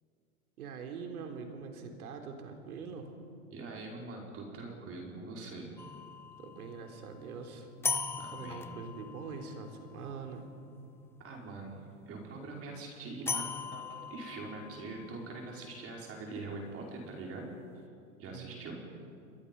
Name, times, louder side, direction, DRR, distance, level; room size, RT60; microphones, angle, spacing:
voice 1, 0.6-3.1 6.4-7.7 8.3-10.5 18.3-18.7, right 5 dB, 80° right, 4 dB, 3.7 m, -43 dB
voice 2, 3.5-5.7 8.2-8.8 11.2-17.8 18.2-18.7, right 3 dB, 30° right, -1 dB, 5.1 m, -43 dB
sound 1, 5.8-11.9 13.3-17.3, left 4 dB, 5° left, 0.5 m, -41 dB
29.0 x 22.0 x 5.5 m, 2.5 s
hypercardioid pair, 120°, 43 cm